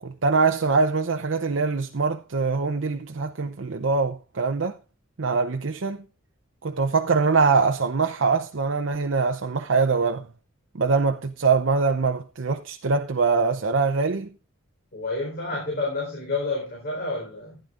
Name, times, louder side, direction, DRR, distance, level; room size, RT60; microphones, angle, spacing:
voice 1, 0.0-4.8 5.2-6.0 6.6-10.3 10.7-14.3, right 4 dB, 65° right, 0.7 m, -23 dB
voice 2, 14.9-17.6, left 3 dB, 50° left, 4.3 m, -29 dB
15.0 x 10.5 x 2.5 m
head